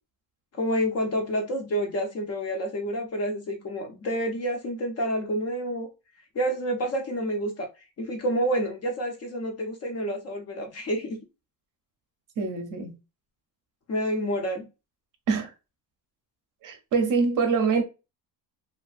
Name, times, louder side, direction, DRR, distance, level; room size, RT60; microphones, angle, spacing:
voice 1, 0.5-5.9 6.3-7.7 8.0-11.2 13.9-14.6, equal, 35° left, 0.4 m, -28 dB
voice 2, 12.4-12.9 15.3-15.5 16.6-17.8, right 5 dB, 45° right, 0.6 m, -24 dB
2.5 x 2.3 x 2.3 m
cardioid pair, 150°, 44 cm